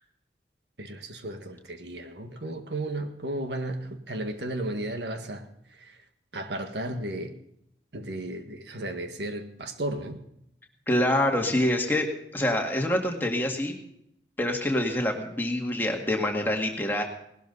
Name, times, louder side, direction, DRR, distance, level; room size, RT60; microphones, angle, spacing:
voice 1, 0.8-6.0 6.3-7.4 7.9-10.2, right 1 dB, 80° right, 6 dB, 1.7 m, -34 dB
voice 2, 10.9-12.1 12.3-13.7 14.4-17.0, left 1 dB, 10° left, 1 dB, 2.0 m, -26 dB
19.0 x 12.5 x 4.0 m, 0.77 s
head